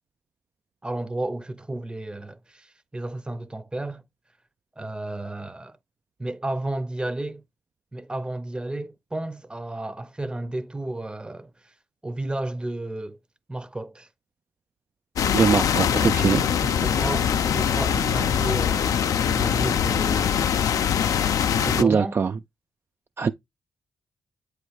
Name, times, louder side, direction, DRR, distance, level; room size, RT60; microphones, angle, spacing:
voice 1, 0.8-4.0 4.8-5.8 6.2-7.4 7.9-11.7 12.0-13.2 13.5-14.1 16.3-20.5 21.6-22.2, right 2 dB, 15° right, 0.7 m, -32 dB
sound 1, 15.2-21.8, left 8 dB, 70° left, 0.5 m, -23 dB
voice 2, 15.3-16.4 21.8-22.3 23.2-23.3, right 5 dB, 40° right, 0.3 m, -21 dB
7.7 x 3.2 x 4.8 m
cardioid pair, 60°, 6 cm